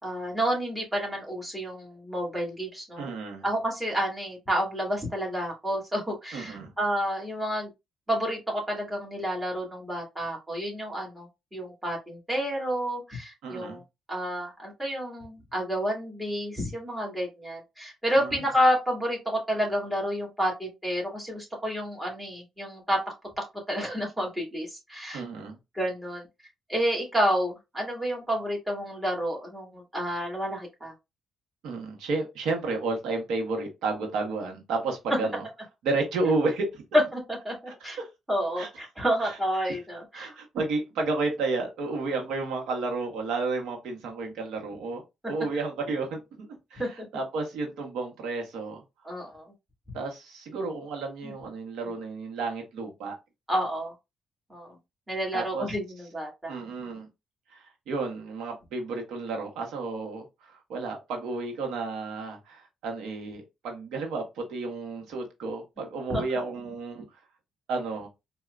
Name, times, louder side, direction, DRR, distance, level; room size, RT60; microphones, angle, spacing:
voice 1, 0.0-3.1 3.4-7.7 8.1-13.8 14.1-23.0 23.4-25.2 25.7-26.2 26.7-30.9 35.1-35.2 37.1-37.5 37.8-38.0 38.3-40.3 46.8-47.1 49.0-49.4 51.2-51.3 53.5-53.9 54.5-54.7 55.1-56.5 66.1-66.2, equal, 10° right, 2.4 m, -30 dB
voice 2, 3.0-3.4 6.3-6.7 13.4-13.8 18.2-18.4 25.1-25.6 31.6-35.4 35.8-36.8 37.7-38.1 38.6-38.7 39.2-39.4 40.1-48.8 49.9-53.1 55.3-55.7 56.5-57.1 57.5-67.1 67.7-68.1, right 3 dB, 85° right, 1.3 m, -32 dB
4.3 x 2.7 x 2.5 m
cardioid pair, 90°, 0 cm